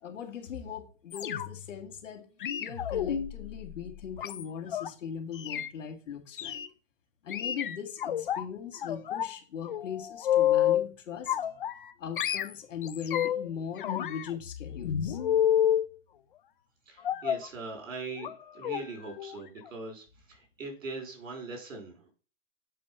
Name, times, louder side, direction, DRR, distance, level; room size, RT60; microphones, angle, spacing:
voice 1, 0.0-2.3 2.6-6.6 7.2-11.4 12.0-15.2, left 7 dB, 70° left, 4 dB, 2.1 m, -39 dB
sound 1, 1.1-1.7 2.4-4.9 5.3-5.7 6.4-6.7 7.3-8.4 8.8-9.4 9.7-10.9 11.3-11.9 12.2-13.5 13.8-15.9 17.0-17.5 18.2-18.4 18.6-18.8 19.2-19.4 19.7-19.8, left 10 dB, 45° left, 0.5 m, -29 dB
voice 2, 16.9-22.1, right 3 dB, 75° right, 1 dB, 4.8 m, -41 dB
7.6 x 4.3 x 5.5 m, 0.38 s
hypercardioid pair, 170°, 39 cm